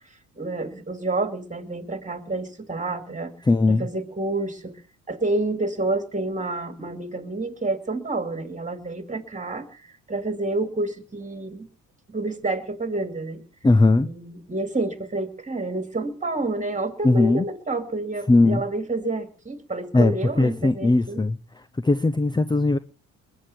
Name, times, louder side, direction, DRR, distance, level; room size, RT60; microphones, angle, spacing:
voice 1, 0.4-3.3 3.7-4.7 5.1-9.8 10.1-11.7 12.1-13.4 14.0-21.2, right 2 dB, 20° right, 2.8 m, -29 dB
voice 2, 3.5-3.9 13.6-14.1 17.0-17.4 18.3-18.6 19.9-20.1 20.4-21.4 21.8-22.8, left 2 dB, 10° left, 0.7 m, -19 dB
21.5 x 8.4 x 6.8 m
hypercardioid pair, 60°, 39 cm